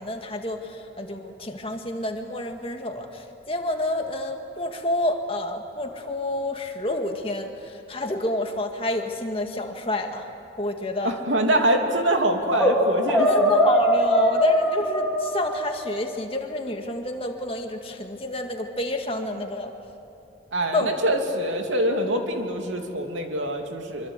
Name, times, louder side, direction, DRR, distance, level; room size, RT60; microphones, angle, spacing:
voice 1, 0.0-10.3 10.6-11.1 13.2-19.7 20.7-21.0, left 1 dB, 30° left, 4 dB, 1.9 m, -29 dB
voice 2, 11.0-13.5 20.5-24.1, right 1 dB, 85° right, 3 dB, 2.9 m, -24 dB
sound 1, 12.5-12.8 13.1-15.9, equal, ahead, 4.3 m, -21 dB
25.5 x 25.0 x 8.2 m, 2.8 s
head